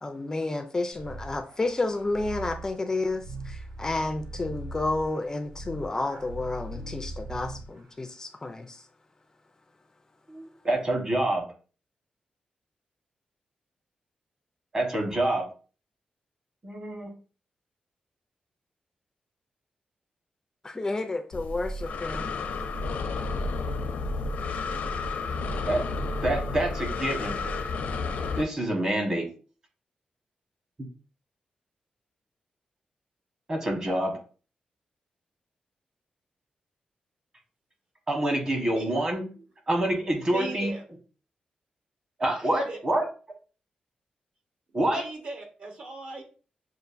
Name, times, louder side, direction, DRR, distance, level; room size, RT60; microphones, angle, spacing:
voice 1, 0.0-8.9 20.6-22.3, left 2 dB, 20° left, 0.3 m, -31 dB
sound 1, 0.9-7.8, right 2 dB, 85° right, 0.7 m, -40 dB
voice 2, 10.3-11.5 14.7-15.5 16.6-17.1 25.7-25.8 26.2-27.4 28.4-29.3 33.5-34.2 38.1-39.2 39.7-40.7 42.2-43.1 44.7-45.0, right 1 dB, 30° right, 1.2 m, -26 dB
Breathing, 21.3-28.4, left 3 dB, 80° left, 0.5 m, -31 dB
voice 3, 38.6-38.9 39.4-39.5 40.3-40.8 42.4-42.8 44.9-46.2, right 2 dB, 55° right, 1.0 m, -38 dB
6.5 x 2.5 x 2.5 m
wide cardioid pair, 150°, 3 cm